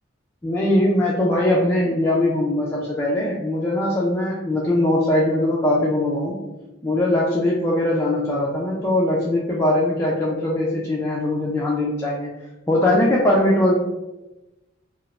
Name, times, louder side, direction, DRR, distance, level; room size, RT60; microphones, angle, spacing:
voice 1, 0.4-6.4 6.8-12.3 12.7-13.7, left 1 dB, 15° left, -5 dB, 0.3 m, -21 dB
2.4 x 2.0 x 3.1 m, 1.0 s
head